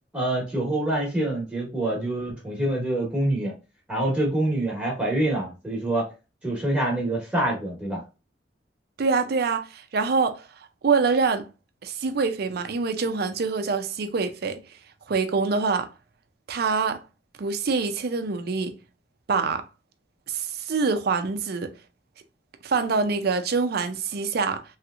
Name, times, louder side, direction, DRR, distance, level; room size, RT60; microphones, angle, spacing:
voice 1, 0.1-3.5 3.9-6.1 6.4-8.0, right 1 dB, 10° right, 1.1 m, -26 dB
voice 2, 9.0-10.5 10.8-11.5 11.8-14.6 15.1-15.9 16.5-17.0 17.4-18.8 19.3-19.7 20.3-21.7 22.6-24.6, right 4 dB, 60° right, 0.5 m, -25 dB
3.1 x 2.9 x 2.4 m
head